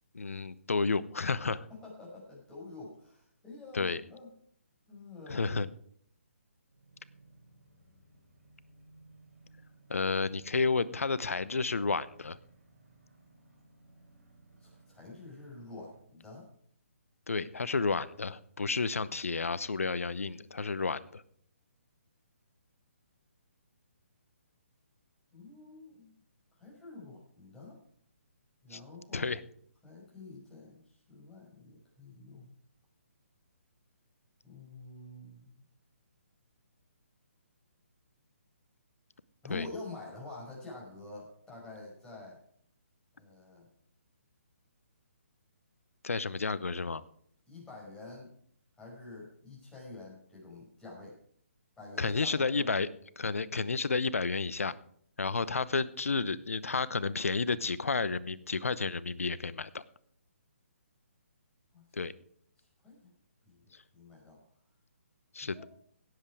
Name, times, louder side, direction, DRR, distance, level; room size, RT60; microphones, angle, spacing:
voice 1, 0.1-1.7 3.7-4.0 5.3-5.7 9.9-12.4 17.3-21.2 28.7-28.8 29.1-29.4 39.5-39.7 46.0-47.0 52.0-52.9 53.2-54.7 55.2-59.8 61.9-62.1 65.3-65.6, left 4 dB, 80° left, 18 dB, 0.8 m, -31 dB
voice 2, 1.7-4.3 4.9-5.6 14.6-16.5 25.3-26.1 26.6-27.8 28.6-29.4 29.8-32.5 34.4-35.6 39.4-42.4 43.2-43.7 47.5-48.3 48.8-51.2 51.8-52.6 61.7-61.9 62.6-63.1 63.4-64.4 65.4-65.7, left 3 dB, 10° left, -4 dB, 5.3 m, -47 dB
sound 1, 6.7-16.0, right 2 dB, 85° right, 6.3 m, -60 dB
17.5 x 7.9 x 4.8 m, 0.63 s
figure-of-eight pair, 145°, 8 cm